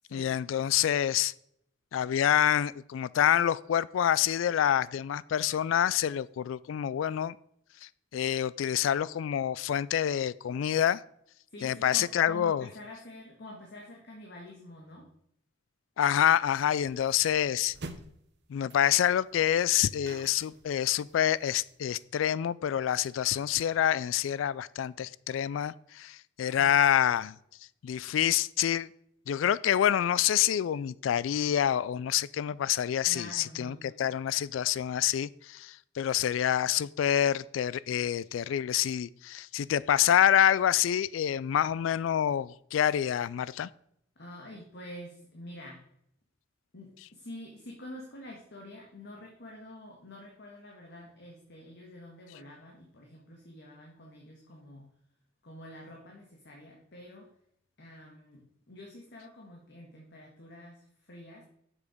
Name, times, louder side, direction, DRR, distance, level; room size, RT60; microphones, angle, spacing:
voice 1, 0.1-1.3 1.9-7.4 7.8-11.0 11.6-12.7 16.0-17.8 18.5-27.3 27.8-28.9 29.3-43.7, left 10 dB, 80° left, 0.3 m, -27 dB
voice 2, 11.5-15.1 33.1-34.1 44.2-45.8 46.7-54.9 55.4-57.3 57.8-61.4, left 1 dB, 60° left, 1.6 m, -47 dB
sound 1, 16.8-22.0, right 2 dB, 60° right, 0.9 m, -48 dB
7.4 x 6.7 x 5.0 m
head